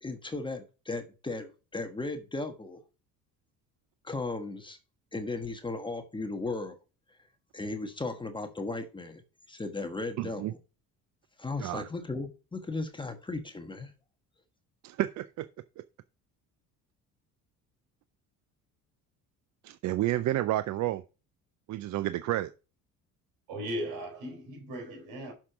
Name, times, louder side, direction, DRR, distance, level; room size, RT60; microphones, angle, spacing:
voice 1, 0.0-2.8 4.0-4.8 5.1-6.8 7.1-7.2 7.5-9.2 9.5-10.6 11.4-13.9, left 3 dB, 15° left, 1.2 m, -36 dB
voice 2, 10.2-10.5 11.6-11.8 14.8-15.5 19.6-21.0 21.7-22.5, right 14 dB, 55° right, 0.5 m, -30 dB
voice 3, 23.5-25.3, equal, 80° right, 4.0 m, -37 dB
6.5 x 5.9 x 6.0 m
cardioid pair, 115°, 35 cm